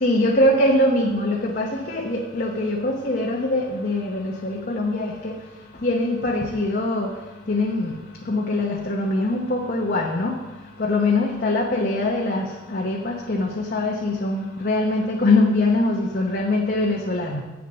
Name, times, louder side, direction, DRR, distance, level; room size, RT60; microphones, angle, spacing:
voice 1, 0.0-5.3 5.8-7.1 7.5-8.0 8.3-10.3 10.8-17.4, left 2 dB, 50° left, -1 dB, 1.0 m, -22 dB
8.0 x 6.9 x 5.6 m, 1.1 s
head